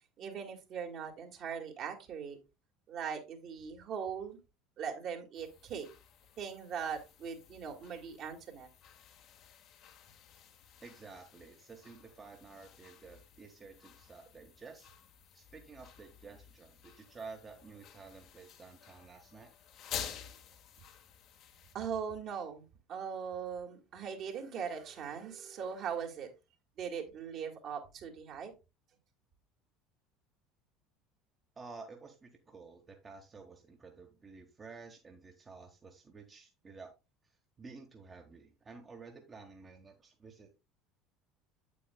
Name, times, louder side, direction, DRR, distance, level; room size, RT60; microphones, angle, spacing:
voice 1, 0.2-2.4 2.9-4.4 4.8-5.9 6.4-8.7 21.7-26.3 26.8-28.5, right 7 dB, 50° right, 2.1 m, -40 dB
sound 1, 5.3-21.8, left 9 dB, 50° left, 1.3 m, -51 dB
voice 2, 10.8-14.9 15.3-19.5 31.6-36.9 37.2-40.5, right 4 dB, 25° right, 1.4 m, -52 dB
8.5 x 8.4 x 2.3 m
figure-of-eight pair, 65°, 0 cm